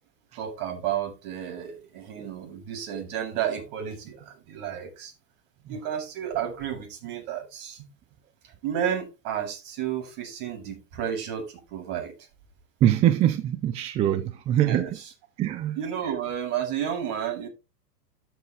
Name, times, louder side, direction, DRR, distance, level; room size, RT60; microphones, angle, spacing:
voice 1, 0.3-5.1 5.7-7.9 8.6-12.1 14.6-15.1 15.8-17.5, right 9 dB, 45° right, 7.7 m, -32 dB
voice 2, 12.8-14.8 15.4-15.8, right 12 dB, 15° right, 0.4 m, -23 dB
13.0 x 7.6 x 3.3 m
hypercardioid pair, 120°, 48 cm